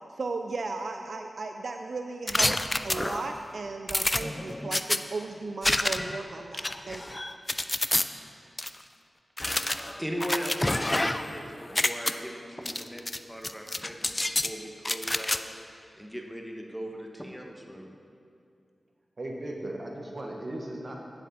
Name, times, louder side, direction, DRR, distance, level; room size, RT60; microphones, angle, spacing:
voice 1, 0.1-2.6 2.8-7.1, right 3 dB, 70° right, 5 dB, 0.4 m, -36 dB
sound 1, 2.3-3.4 3.9-5.0 5.6-6.2 6.5-8.0 8.6-8.7 9.4-11.4 11.6-12.1 12.7-13.2 13.4-14.5 14.8-15.4, left 1 dB, 25° left, 0.4 m, -28 dB
voice 2, 10.0-13.0 13.3-14.1 14.4-15.4 15.6-17.9, equal, ahead, 1 dB, 1.2 m, -38 dB
voice 3, 19.2-21.0, right 1 dB, 50° right, 0 dB, 1.3 m, -37 dB
9.3 x 7.6 x 4.2 m, 2.4 s
cardioid pair, 50°, 0 cm